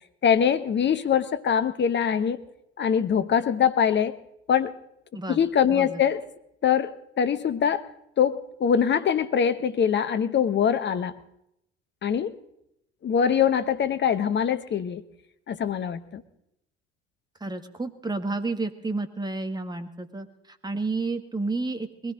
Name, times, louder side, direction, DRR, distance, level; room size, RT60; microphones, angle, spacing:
voice 1, 0.2-2.4 2.8-4.2 4.5-4.7 5.3-6.2 6.6-7.8 8.2-11.2 12.0-12.4 13.0-15.0 15.5-16.2, left 8 dB, 35° left, 11 dB, 1.2 m, -23 dB
voice 2, 5.7-6.0 17.4-22.1, right 3 dB, 10° right, 8 dB, 1.8 m, -31 dB
21.5 x 17.0 x 3.9 m, 0.78 s
figure-of-eight pair, 60°, 32 cm